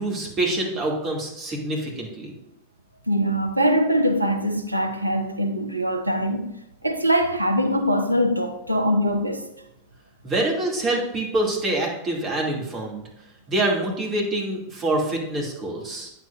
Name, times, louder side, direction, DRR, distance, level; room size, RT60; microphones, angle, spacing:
voice 1, 0.0-2.3 10.2-13.0 13.5-16.1, right 2 dB, 30° right, 2.5 m, -26 dB
voice 2, 3.1-6.5 6.8-9.5, equal, 85° right, 0.7 m, -22 dB
9.2 x 7.4 x 2.6 m
figure-of-eight pair, 90°, 0 cm